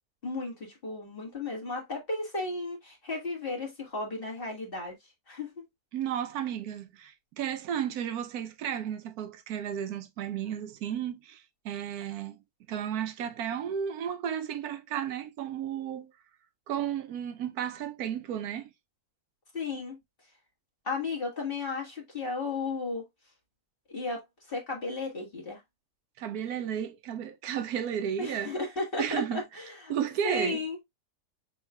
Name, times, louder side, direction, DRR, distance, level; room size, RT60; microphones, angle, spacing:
voice 1, 0.2-4.9 5.3-5.6 19.5-20.0 20.8-23.1 23.9-25.6 28.2-29.9 30.2-30.8, left 3 dB, 40° left, 1.7 m, -34 dB
voice 2, 5.9-12.4 12.7-16.1 16.7-18.7 26.2-28.5 29.0-29.4 29.9-30.6, right 9 dB, 80° right, 1.1 m, -33 dB
5.5 x 3.9 x 2.2 m
omnidirectional pair, 1.6 m